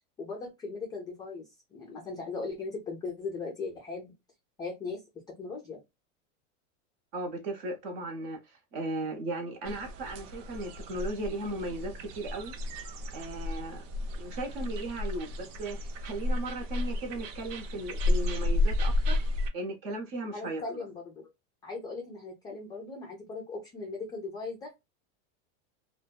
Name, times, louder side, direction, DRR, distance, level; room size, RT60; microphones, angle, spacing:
voice 1, 0.2-4.1 4.6-5.0 5.4-5.8 20.3-21.3 21.6-24.7, left 3 dB, 10° left, 0.3 m, -38 dB
voice 2, 7.1-12.6 13.1-13.8 14.2-19.2 19.5-20.8, right 2 dB, 50° right, 0.9 m, -36 dB
sound 1, 9.6-19.5, left 1 dB, 75° right, 0.6 m, -32 dB
2.5 x 2.2 x 2.3 m
supercardioid pair, 150°, 37 cm